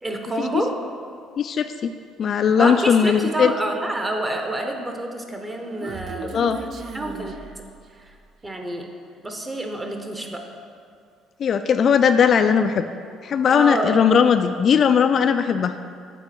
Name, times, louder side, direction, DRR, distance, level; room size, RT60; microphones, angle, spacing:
voice 1, 0.0-0.7 2.5-6.7 6.9-7.3 8.4-8.9 9.2-10.5 13.5-14.0, right 1 dB, 20° right, 3 dB, 0.9 m, -28 dB
voice 2, 1.4-1.9 2.2-3.5 6.3-6.6 11.4-12.8 13.2-15.9, left 7 dB, 50° left, 8 dB, 0.3 m, -18 dB
Human voice, 5.2-8.2, right 5 dB, 50° right, 0.4 m, -38 dB
6.9 x 4.8 x 6.0 m, 2.2 s
cardioid pair, 95°, 0 cm